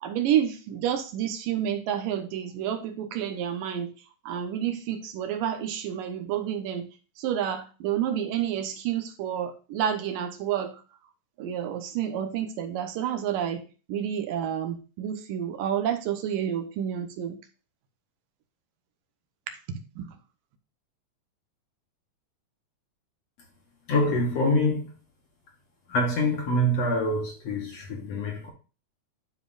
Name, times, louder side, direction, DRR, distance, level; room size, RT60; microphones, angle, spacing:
voice 1, 0.0-3.9 4.3-6.9 7.2-10.8 11.4-13.6 13.9-17.4 19.7-20.1, right 9 dB, 75° right, 2.6 m, -29 dB
voice 2, 23.9-24.9 25.9-28.5, left 1 dB, 60° left, 2.0 m, -25 dB
11.5 x 5.1 x 2.5 m
omnidirectional pair, 4.0 m